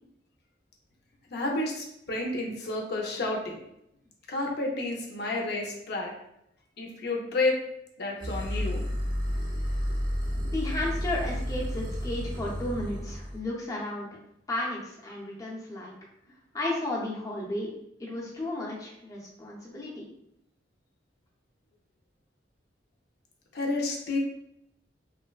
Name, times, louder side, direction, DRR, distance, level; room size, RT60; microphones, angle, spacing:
voice 1, 1.3-3.6 4.3-6.1 6.8-7.6 8.0-8.8 23.5-24.2, left 2 dB, 60° left, 0 dB, 0.5 m, -30 dB
sound 1, 8.2-13.4, equal, 25° right, 0.5 m, -31 dB
voice 2, 10.4-14.1 14.5-15.9 16.5-17.7 18.0-20.1, left 1 dB, 20° left, -5 dB, 0.6 m, -33 dB
3.1 x 2.1 x 2.3 m, 0.78 s
head